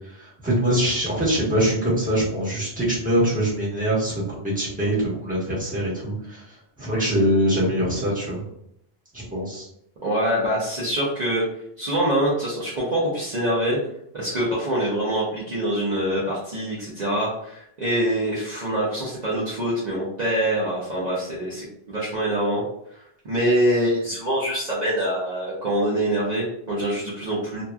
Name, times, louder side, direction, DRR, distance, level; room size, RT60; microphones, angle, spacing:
voice 1, 0.1-8.4 9.1-9.7, right 1 dB, 10° right, -7 dB, 1.2 m, -23 dB
voice 2, 10.0-11.4 11.8-13.8 14.1-22.6 22.9-27.6, right 1 dB, 45° right, -8 dB, 0.8 m, -24 dB
2.9 x 2.6 x 2.3 m, 0.75 s
omnidirectional pair, 1.1 m